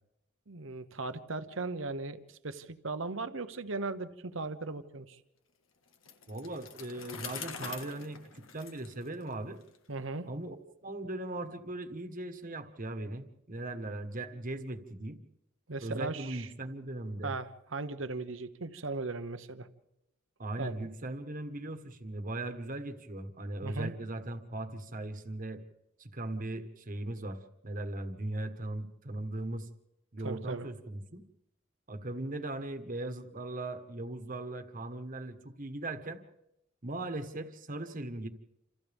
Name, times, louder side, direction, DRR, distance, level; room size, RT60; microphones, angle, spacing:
voice 1, 0.5-5.2 9.9-10.3 15.7-16.5 17.2-19.7 20.6-20.8 23.6-23.9 30.2-30.7, right 3 dB, 70° right, 10 dB, 1.1 m, -37 dB
Bicycle, 5.9-9.8, left 6 dB, 75° left, 1.7 m, -45 dB
voice 2, 6.3-9.6 10.3-10.5 10.8-15.2 15.8-17.3 20.4-25.6 26.0-27.4 27.6-29.7 30.1-31.2 31.9-36.2 36.8-38.3, right 2 dB, 40° right, 8 dB, 1.5 m, -39 dB
28.0 x 28.0 x 3.6 m, 0.86 s
head